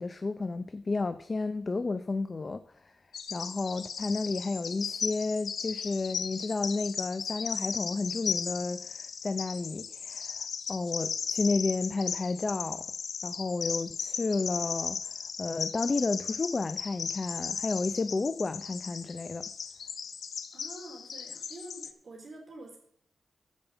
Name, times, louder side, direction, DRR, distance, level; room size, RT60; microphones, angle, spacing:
voice 1, 0.0-2.9 3.3-12.9 13.2-15.1 15.4-19.5, left 3 dB, 35° left, 0.6 m, -32 dB
Bird vocalization bird call bird song, 3.1-21.9, left 6 dB, 80° left, 0.8 m, -36 dB
voice 2, 20.5-22.8, right 1 dB, 50° right, 3.7 m, -47 dB
13.5 x 5.4 x 7.1 m
wide cardioid pair, 95°, 0 cm